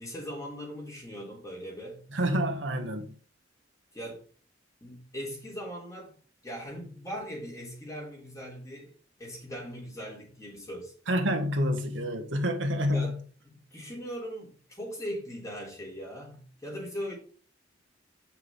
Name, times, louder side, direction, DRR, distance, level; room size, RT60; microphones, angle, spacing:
voice 1, 0.0-2.1 3.9-4.2 4.8-6.1 6.4-8.9 9.2-10.9 12.9-13.2 13.4-17.2, equal, 15° left, 3.4 m, -39 dB
voice 2, 2.1-3.1 11.1-13.2, equal, 70° right, 1.7 m, -28 dB
9.1 x 5.9 x 3.7 m
head